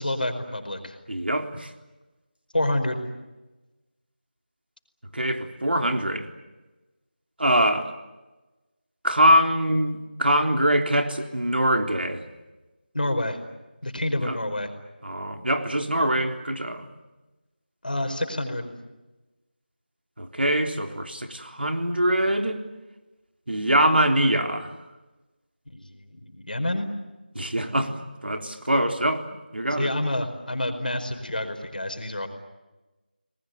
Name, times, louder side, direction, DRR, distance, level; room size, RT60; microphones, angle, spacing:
voice 1, 0.0-1.0 2.5-3.1 12.9-13.4 13.8-14.7 17.8-18.7 25.7-26.9 29.8-32.3, left 1 dB, 60° left, 6 dB, 4.9 m, -28 dB
voice 2, 1.1-1.7 5.1-6.3 7.4-7.9 9.0-12.3 14.2-14.4 15.0-17.0 20.2-22.6 23.5-24.7 27.4-29.9, right 1 dB, 80° right, 4 dB, 3.8 m, -23 dB
29.0 x 20.5 x 9.6 m, 1.1 s
figure-of-eight pair, 175°, 5 cm